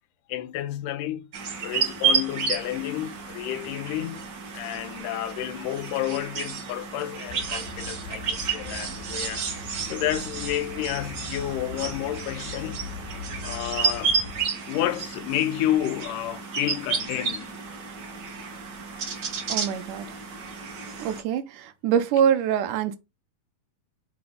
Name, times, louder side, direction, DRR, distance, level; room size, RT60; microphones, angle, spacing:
voice 1, 0.3-1.3 1.6-4.3 4.5-9.4 9.9-12.9 13.4-14.2 14.7-17.6 18.4-18.6, left 13 dB, 80° left, 2.3 m, -30 dB
sound 1, 1.3-21.2, right 6 dB, 55° right, 1.2 m, -31 dB
sound 2, 7.3-14.4, left 3 dB, 40° left, 1.6 m, -40 dB
voice 2, 19.5-20.2 21.0-23.0, right 8 dB, 80° right, 2.2 m, -24 dB
6.1 x 3.8 x 5.2 m
omnidirectional pair, 3.8 m